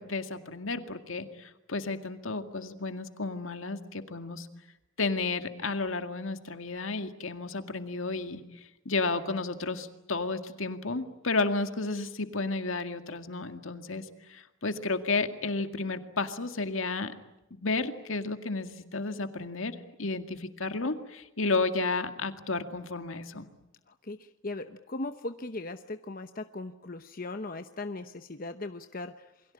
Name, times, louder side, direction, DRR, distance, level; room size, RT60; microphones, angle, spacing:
voice 1, 0.0-4.5 5.0-17.1 17.5-23.5, left 3 dB, 75° left, 8 dB, 2.0 m, -32 dB
voice 2, 23.9-29.3, left 2 dB, 45° left, 8 dB, 0.9 m, -38 dB
28.5 x 22.5 x 8.7 m, 0.95 s
head